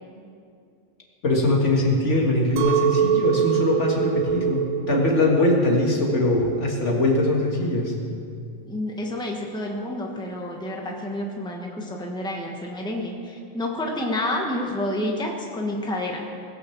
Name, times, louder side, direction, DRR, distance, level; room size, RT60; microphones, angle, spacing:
voice 1, 1.2-7.9, left 1 dB, 60° left, -1 dB, 2.1 m, -21 dB
Chink clink, 2.6-7.7, right 9 dB, 90° right, 1.3 m, -25 dB
voice 2, 8.6-16.3, left 1 dB, 5° left, 0 dB, 1.3 m, -29 dB
20.0 x 6.6 x 7.1 m, 2.3 s
omnidirectional pair, 1.4 m